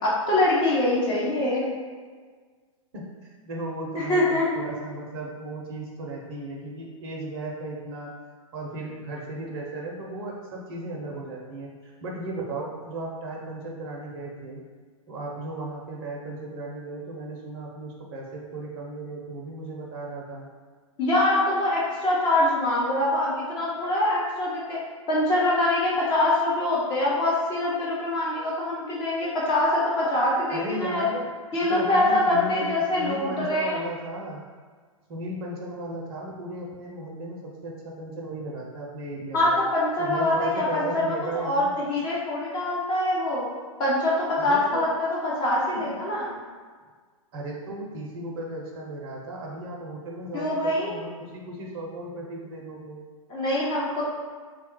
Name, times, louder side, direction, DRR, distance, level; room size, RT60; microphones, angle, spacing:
voice 1, 0.0-1.6 4.0-4.6 21.0-24.8 25.1-31.1 31.5-33.8 39.3-43.4 43.8-46.3 50.3-50.9 53.3-54.0, left 1 dB, 25° left, -6 dB, 0.8 m, -24 dB
voice 2, 2.9-8.1 8.5-14.6 15.1-20.5 30.5-34.4 35.1-39.6 40.0-41.8 44.4-44.9 45.7-45.9 47.3-53.0, right 1 dB, 45° right, -2 dB, 0.6 m, -35 dB
3.4 x 2.2 x 2.9 m, 1.6 s
figure-of-eight pair, 105°, 17 cm